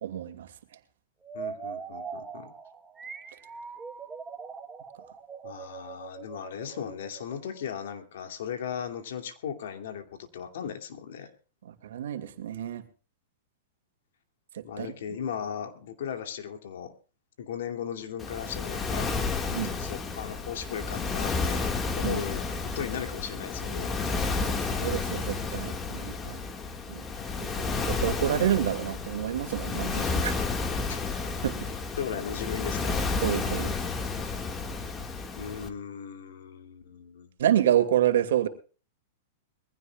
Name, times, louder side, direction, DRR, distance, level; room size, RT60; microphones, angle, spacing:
voice 1, 0.0-0.5 11.7-12.8 14.5-15.0 19.5-19.8 22.0-22.2 24.4-26.4 26.9-27.0 27.3-30.4 31.4-31.6 33.2-33.8 37.4-38.5, right 11 dB, 75° right, 7 dB, 2.3 m, -28 dB
sound 1, 1.2-7.9, right 6 dB, 15° right, 1.1 m, -41 dB
voice 2, 1.3-2.5 5.4-11.3 14.6-16.9 17.4-19.1 19.8-22.4 22.7-23.9 30.9-31.0 32.0-33.1 35.4-37.3, left 8 dB, 75° left, 6 dB, 2.6 m, -37 dB
Waves surf, 18.2-35.7, left 4 dB, 20° left, 1.9 m, -31 dB
22.5 x 16.0 x 2.4 m, 0.36 s
hypercardioid pair, 135°, 0 cm